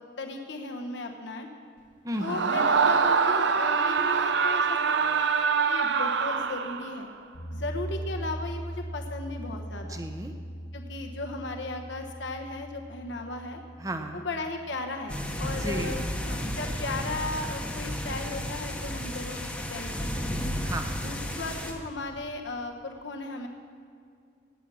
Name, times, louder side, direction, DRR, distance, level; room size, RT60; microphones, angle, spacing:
voice 1, 0.2-1.5 2.2-5.0 5.7-7.1 7.5-10.0 10.7-13.6 14.1-20.4 21.0-23.5, left 2 dB, 65° left, 3 dB, 1.1 m, -36 dB
voice 2, 2.0-2.6 9.9-10.3 13.8-14.2 15.6-16.0 20.6-20.9, right 1 dB, 15° right, 6 dB, 0.9 m, -34 dB
Screaming, 2.2-7.1, right 5 dB, 65° right, 0.6 m, -24 dB
sound 1, 7.3-17.4, equal, 90° left, 2.8 m, -41 dB
sound 2, 15.1-21.7, equal, 5° left, 1.0 m, -33 dB
16.5 x 9.8 x 6.2 m, 2.3 s
head